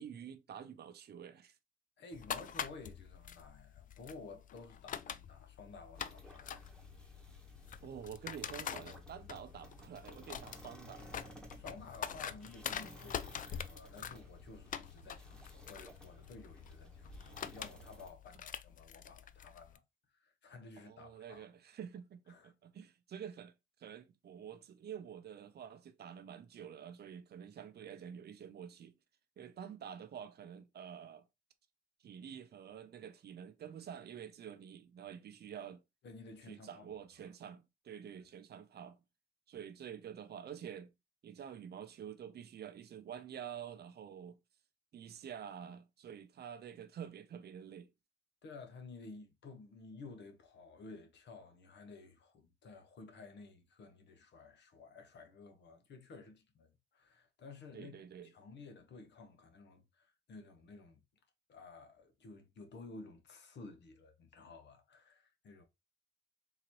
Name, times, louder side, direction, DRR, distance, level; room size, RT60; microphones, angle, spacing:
voice 1, 0.0-1.6 7.8-11.1 20.8-23.5 23.8-28.9 29.4-31.2 32.0-35.8 36.5-39.0 39.5-40.9 41.2-44.4 44.9-47.9 57.7-58.3, right 8 dB, 55° right, 0.7 m, -48 dB
voice 2, 2.0-6.7 11.5-19.8 20.1-21.5 22.3-22.5 36.0-36.9 37.2-37.3 48.4-61.0 61.5-65.6, left 3 dB, 60° left, 1.1 m, -53 dB
sound 1, 2.1-19.8, left 8 dB, 45° left, 0.4 m, -46 dB
sound 2, 5.9-18.1, left 1 dB, 5° left, 1.2 m, -55 dB
3.9 x 2.8 x 3.0 m
cardioid pair, 90°, 20 cm